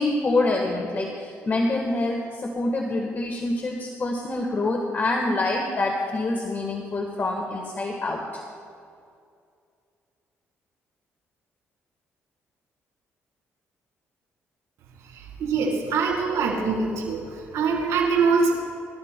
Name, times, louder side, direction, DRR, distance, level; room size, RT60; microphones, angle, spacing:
voice 1, 0.0-8.4, left 2 dB, 40° left, 1 dB, 1.3 m, -26 dB
voice 2, 15.4-17.2 17.5-18.5, right 5 dB, 80° right, -3 dB, 3.7 m, -23 dB
25.0 x 13.5 x 2.2 m, 2.4 s
cardioid pair, 85°, 5 cm